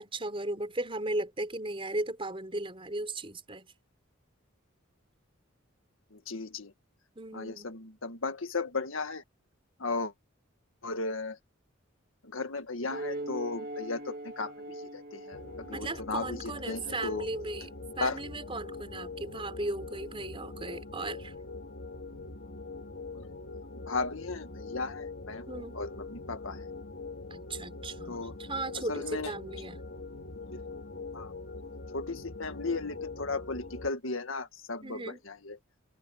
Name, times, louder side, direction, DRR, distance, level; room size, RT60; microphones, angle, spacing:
voice 1, 0.0-3.7 7.1-7.7 15.7-17.7 18.0-21.3 25.5-25.8 27.3-29.8 34.8-35.2, right 2 dB, 25° right, 5.0 m, -36 dB
voice 2, 6.1-6.7 7.3-9.2 9.8-10.1 10.8-11.4 12.2-17.3 18.0-18.2 23.1-23.3 23.7-25.5 25.7-26.7 28.1-28.3 28.7-29.3 30.3-30.6 31.1-31.3 31.9-35.6, left 3 dB, 85° left, 1.8 m, -36 dB
sound 1, 12.9-17.9, right 1 dB, 45° right, 1.9 m, -42 dB
sound 2, 15.3-33.9, left 3 dB, 60° left, 2.0 m, -43 dB
head